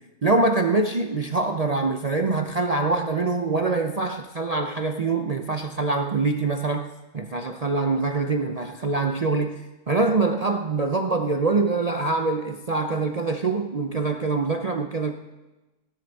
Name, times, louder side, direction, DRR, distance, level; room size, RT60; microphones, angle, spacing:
voice 1, 0.2-6.9 7.1-15.1, right 3 dB, 50° right, 5 dB, 0.4 m, -24 dB
17.0 x 10.5 x 4.1 m, 1.1 s
omnidirectional pair, 1.5 m